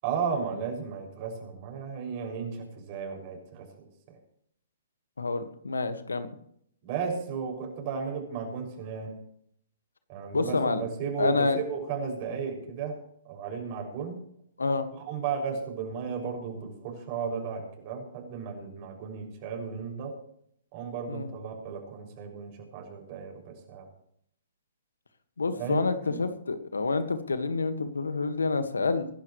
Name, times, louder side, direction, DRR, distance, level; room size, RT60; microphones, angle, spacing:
voice 1, 0.0-3.9 6.8-9.1 10.1-14.2 15.0-20.1 20.7-23.9 25.6-26.2, right 6 dB, 40° right, 3 dB, 6.6 m, -34 dB
voice 2, 5.2-6.3 10.3-10.8 11.2-11.6 14.6-14.9 21.1-21.3 25.4-29.1, left 3 dB, 85° left, 10 dB, 1.7 m, -28 dB
25.0 x 12.0 x 3.2 m, 0.70 s
hypercardioid pair, 130°, 0 cm